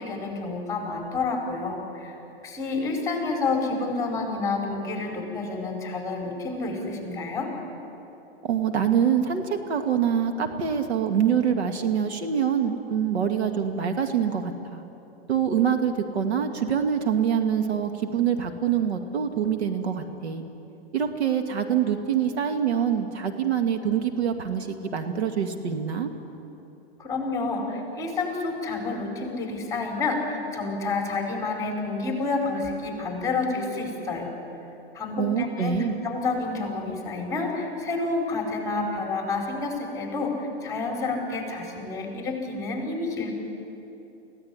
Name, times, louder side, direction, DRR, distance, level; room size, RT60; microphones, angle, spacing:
voice 1, 0.0-2.2 2.4-7.5 27.0-34.3 34.9-35.8 36.0-43.3, left 3 dB, 10° left, 1 dB, 5.1 m, -29 dB
voice 2, 8.4-14.8 15.3-20.4 20.9-26.1 35.2-36.0, right 8 dB, 85° right, 6 dB, 2.3 m, -25 dB
23.5 x 16.5 x 9.8 m, 2.9 s
hypercardioid pair, 135°, 32 cm